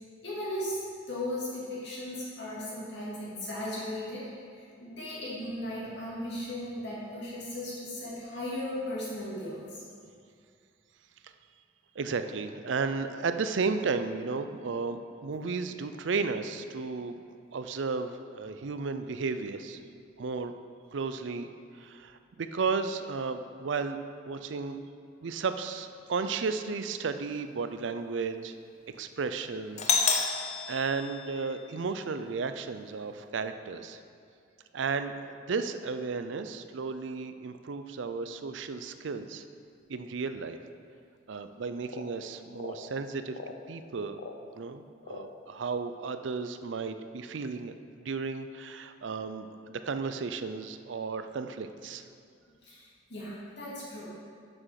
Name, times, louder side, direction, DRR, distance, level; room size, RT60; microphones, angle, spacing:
voice 1, 0.2-0.8 1.1-4.3 4.5-9.8 52.6-54.1, left 1 dB, 65° left, -7 dB, 2.4 m, -37 dB
voice 2, 12.0-17.2 17.5-19.8 20.2-20.5 20.9-24.0 24.2-24.8 25.2-28.6 28.9-34.0 34.7-39.4 39.9-40.6 41.3-43.4 43.7-44.2 44.5-47.7 48.0-52.0, right 4 dB, 70° right, 9 dB, 0.5 m, -34 dB
Doorbell, 29.8-31.8, left 5 dB, 35° left, 0.7 m, -29 dB
sound 1, 41.8-42.1 42.5-42.9 43.3-43.6 44.1-44.4 45.0-45.4, left 3 dB, 80° left, 0.7 m, -42 dB
7.9 x 6.2 x 5.8 m, 2.3 s
head